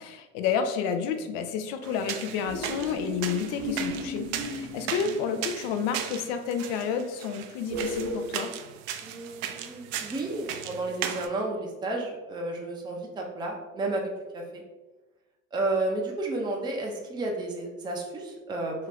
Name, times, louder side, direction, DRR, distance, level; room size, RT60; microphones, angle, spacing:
voice 1, 0.0-8.5, left 6 dB, 60° left, 8 dB, 0.5 m, -30 dB
sound 1, 1.8-11.3, right 9 dB, 65° right, 0.5 m, -37 dB
sound 2, 2.4-5.6 7.7-8.2, equal, 30° right, 0.9 m, -35 dB
voice 2, 9.0-14.6 15.5-18.9, right 2 dB, 10° right, 0 dB, 0.5 m, -32 dB
2.8 x 2.4 x 3.3 m, 1.1 s
hypercardioid pair, 85°, 41 cm